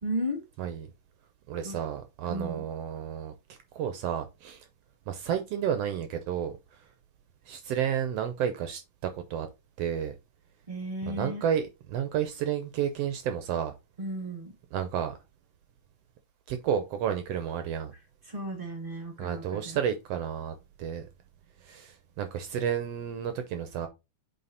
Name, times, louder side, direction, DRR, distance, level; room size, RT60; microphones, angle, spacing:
voice 1, 0.0-0.4 1.6-1.8 2.3-2.5 10.7-11.4 14.0-14.5 18.3-19.8, equal, 35° right, 0.9 m, -34 dB
voice 2, 1.5-4.7 5.1-6.6 7.5-9.5 9.8-10.1 11.1-13.7 14.7-15.2 16.5-17.9 19.2-21.1 21.6-23.9, right 9 dB, 75° right, 1.5 m, -31 dB
8.5 x 3.5 x 3.9 m
omnidirectional pair, 3.5 m